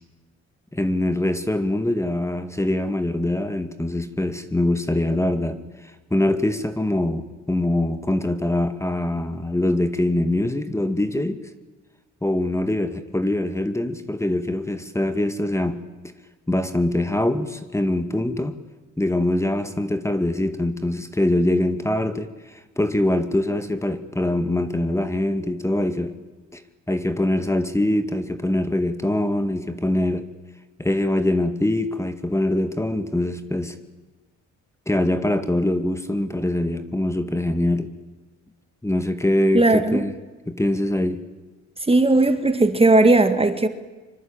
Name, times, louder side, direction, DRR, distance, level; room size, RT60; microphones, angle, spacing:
voice 1, 0.7-5.6 5.8-11.4 12.2-15.8 16.5-18.6 19.0-26.1 26.5-26.6 26.9-30.3 30.8-33.8 34.9-37.9 38.8-40.1 40.5-41.2, left 1 dB, 10° left, 9 dB, 2.1 m, -23 dB
voice 2, 39.5-40.0 41.9-43.7, right 2 dB, 20° right, 9 dB, 2.0 m, -17 dB
25.0 x 24.0 x 8.9 m, 1.2 s
cardioid pair, 90°, 30 cm